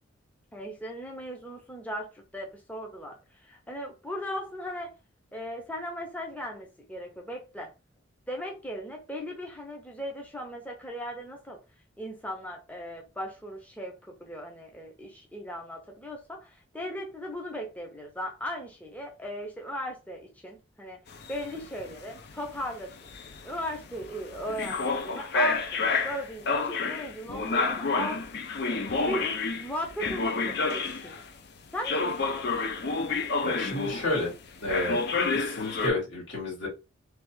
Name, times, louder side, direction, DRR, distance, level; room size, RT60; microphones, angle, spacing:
voice 1, 0.5-4.9 5.3-7.7 8.3-11.6 12.0-21.0 21.3-23.1 23.4-28.2 29.0-31.3 31.7-32.7, equal, 5° left, 0.6 m, -37 dB
sound 1, 21.1-31.3 31.8-34.3 34.7-35.9, left 4 dB, 55° left, 0.5 m, -29 dB
voice 2, 33.4-34.3 34.6-35.0 35.3-36.7, left 2 dB, 70° left, 2.0 m, -30 dB
3.3 x 2.3 x 3.1 m
head